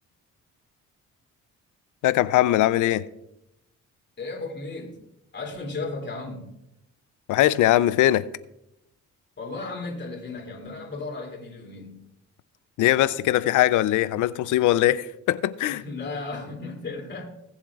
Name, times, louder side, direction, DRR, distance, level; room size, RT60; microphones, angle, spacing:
voice 1, 2.0-3.0 7.3-8.3 12.8-15.8, left 14 dB, 85° left, 0.5 m, -21 dB
voice 2, 4.2-5.0 5.3-6.5 9.4-12.0 15.7-17.3, left 3 dB, 35° left, 2.8 m, -35 dB
20.0 x 7.3 x 2.4 m
cardioid pair, 90°, 30 cm